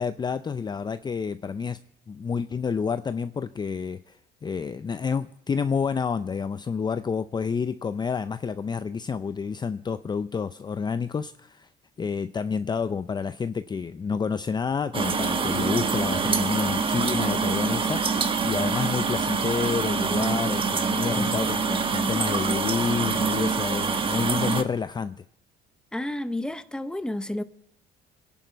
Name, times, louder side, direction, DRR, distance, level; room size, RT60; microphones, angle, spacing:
voice 1, 0.0-1.8 2.1-11.7 12.0-25.2, left 6 dB, 25° left, 0.6 m, -29 dB
sound 1, 14.9-24.6, right 5 dB, 30° right, 1.6 m, -25 dB
voice 2, 25.9-27.4, left 1 dB, 5° left, 1.0 m, -31 dB
26.5 x 11.0 x 4.6 m
cardioid pair, 110°, 17 cm